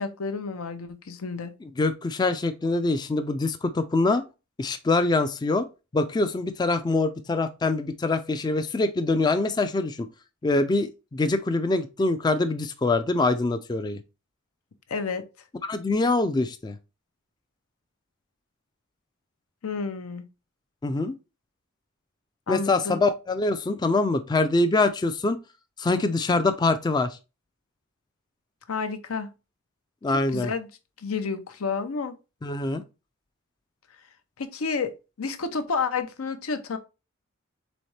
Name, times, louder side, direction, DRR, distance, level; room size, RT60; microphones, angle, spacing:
voice 1, 0.0-1.5 14.9-15.3 19.6-20.2 22.5-23.0 28.7-29.3 30.3-30.7 31.0-32.1 34.4-34.9 35.2-36.8, left 5 dB, 85° left, 0.6 m, -30 dB
voice 2, 1.6-4.2 4.6-5.7 5.9-10.1 10.4-14.0 15.6-16.8 20.8-21.1 22.5-25.4 25.8-27.2 30.0-30.5 32.4-32.8, left 3 dB, 20° left, 0.3 m, -24 dB
4.2 x 3.5 x 3.2 m
head